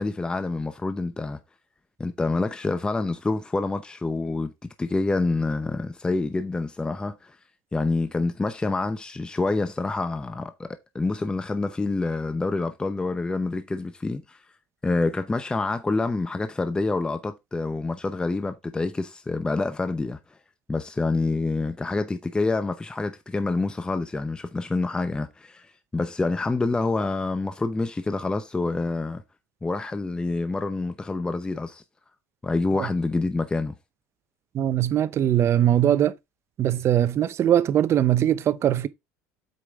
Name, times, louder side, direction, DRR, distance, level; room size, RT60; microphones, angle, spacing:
voice 1, 0.0-1.4 2.0-7.4 7.7-14.4 14.8-20.2 20.7-29.2 29.6-31.8 32.4-33.7, left 3 dB, 15° left, 0.8 m, -27 dB
voice 2, 34.5-36.1 36.6-38.9, right 11 dB, 40° right, 0.8 m, -21 dB
8.1 x 5.1 x 3.6 m
supercardioid pair, 110°, 7 cm